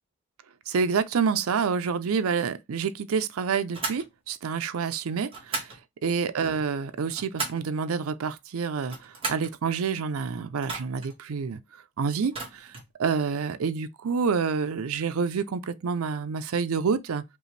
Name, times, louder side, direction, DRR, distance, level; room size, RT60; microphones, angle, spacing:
voice 1, 0.7-11.6 12.0-12.7 13.0-17.2, right 5 dB, 75° right, 0.5 m, -28 dB
sound 1, 3.7-4.1 5.3-5.8 6.8-7.7 8.8-9.5 10.6-11.1 12.2-12.9, right 3 dB, 25° right, 1.5 m, -35 dB
5.3 x 2.5 x 3.1 m
head